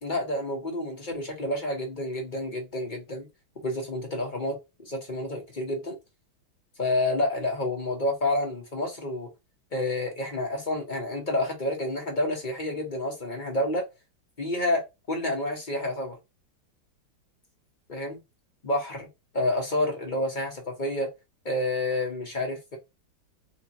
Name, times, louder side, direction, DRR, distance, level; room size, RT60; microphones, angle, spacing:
voice 1, 0.0-3.3 3.6-6.0 6.8-9.3 9.7-13.8 14.4-14.8 15.1-16.2 17.9-18.2 18.6-19.1 19.3-21.1 21.4-22.8, left 1 dB, 35° left, 0.8 m, -29 dB
4.4 x 2.3 x 4.1 m
omnidirectional pair, 2.4 m